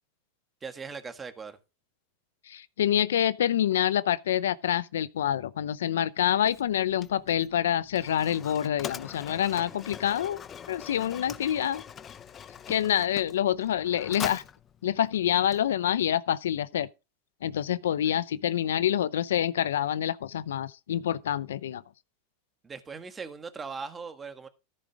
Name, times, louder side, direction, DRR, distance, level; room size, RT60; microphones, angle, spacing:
voice 1, 0.6-1.6 18.0-18.1 22.6-24.5, right 5 dB, 20° right, 1.6 m, -39 dB
voice 2, 2.5-10.4 10.7-11.8 12.7-14.4 14.8-16.9 17.4-21.8, left 10 dB, 85° left, 0.6 m, -27 dB
Mechanisms, 6.4-16.1, left 8 dB, 25° left, 0.6 m, -43 dB
14.0 x 5.3 x 5.0 m
hypercardioid pair, 120°, 0 cm